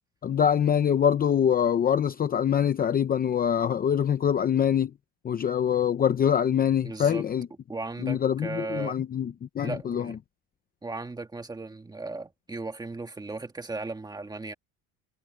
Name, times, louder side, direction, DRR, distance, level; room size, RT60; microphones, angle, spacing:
voice 1, 0.2-4.9 5.2-7.5 8.0-10.1, left 8 dB, 25° left, 0.6 m, -24 dB
voice 2, 6.8-7.2 7.7-9.0 9.6-10.2 10.8-14.5, right 3 dB, 10° right, 1.6 m, -36 dB
cardioid pair, 160°, 36 cm